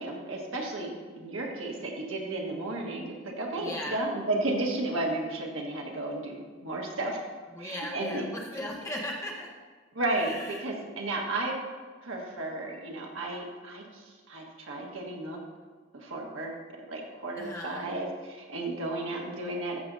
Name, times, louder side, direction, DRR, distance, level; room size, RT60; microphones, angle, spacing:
voice 1, 0.0-7.3 7.6-8.2 9.9-11.5 12.0-15.4 15.9-16.5 16.9-19.8, right 2 dB, 80° right, -1 dB, 1.6 m, -33 dB
voice 2, 3.6-4.0 7.5-9.5 10.1-10.6 17.4-17.9, left 1 dB, 15° left, -3 dB, 1.1 m, -38 dB
13.5 x 6.9 x 2.7 m, 1.5 s
head